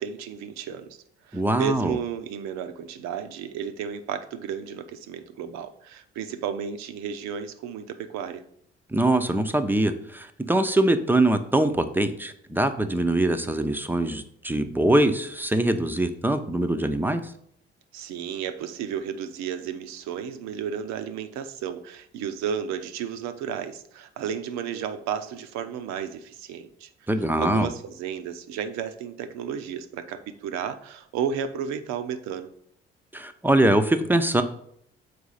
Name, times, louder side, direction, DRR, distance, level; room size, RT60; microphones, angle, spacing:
voice 1, 0.0-8.4 17.9-32.5, right 8 dB, 60° right, 9 dB, 0.7 m, -33 dB
voice 2, 1.3-2.0 8.9-17.2 27.1-27.7 33.1-34.4, right 1 dB, 5° right, 8 dB, 0.6 m, -23 dB
6.7 x 4.7 x 4.0 m, 0.68 s
figure-of-eight pair, 45°, 31 cm